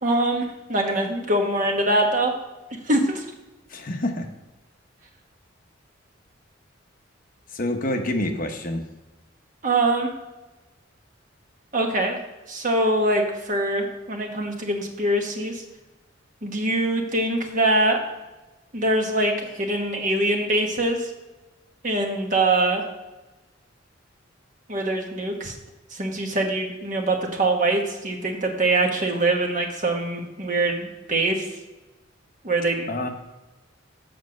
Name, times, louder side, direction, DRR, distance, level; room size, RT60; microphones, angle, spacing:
voice 1, 0.0-2.3 2.7-3.2 9.6-10.1 11.7-12.2 12.5-15.6 16.4-18.0 18.7-21.1 21.8-22.8 24.7-25.5 25.9-31.5 32.4-32.9, right 2 dB, 40° right, 2 dB, 1.3 m, -23 dB
voice 2, 3.7-4.3 7.5-8.8 32.9-33.1, left 1 dB, 45° left, 5 dB, 0.9 m, -27 dB
7.8 x 5.6 x 6.4 m, 1.1 s
head